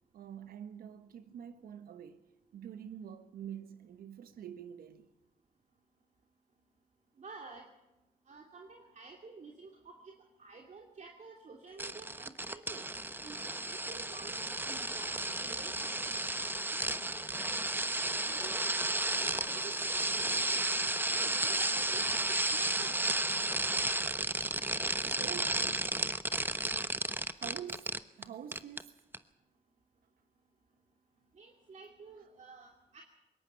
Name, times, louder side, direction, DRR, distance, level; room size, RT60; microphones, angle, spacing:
voice 1, 0.1-2.2 2.5-5.1 25.2-25.7 27.3-28.9, right 9 dB, 80° right, 1.3 m, -46 dB
voice 2, 7.2-7.6 8.3-10.1 10.4-12.8 13.2-16.1 16.7-16.9 17.9-18.7 19.1-20.6 20.9-23.1 31.4-33.0, right 4 dB, 55° right, 2.8 m, -51 dB
sound 1, 11.8-28.2 28.5-28.8 29.1-29.2, right 2 dB, 15° right, 1.0 m, -33 dB
21.0 x 18.0 x 7.0 m
supercardioid pair, 55°, 15 cm